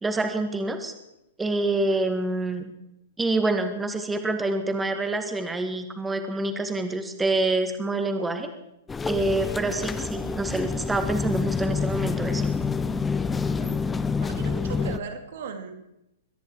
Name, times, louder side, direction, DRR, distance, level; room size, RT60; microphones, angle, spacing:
voice 1, 0.0-0.9 1.4-2.7 3.2-8.5 9.1-12.5, right 2 dB, 10° right, 7 dB, 1.9 m, -27 dB
sound 1, 8.9-15.0, left 5 dB, 15° left, 0.7 m, -27 dB
voice 2, 13.5-15.7, right 6 dB, 60° right, 7 dB, 2.6 m, -39 dB
22.5 x 10.5 x 4.8 m, 0.86 s
hypercardioid pair, 115°, 0 cm